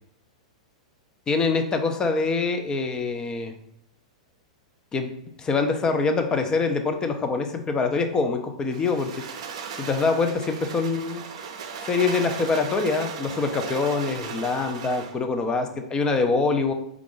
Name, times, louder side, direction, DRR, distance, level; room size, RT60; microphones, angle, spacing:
voice 1, 1.3-3.6 4.9-5.1 5.4-9.1 9.8-11.2 11.8-16.7, left 4 dB, 20° left, 6 dB, 0.6 m, -24 dB
sound 1, 8.7-15.2, right 6 dB, 65° right, 0.6 m, -36 dB
4.7 x 2.4 x 3.7 m, 0.77 s
hypercardioid pair, 105°, 4 cm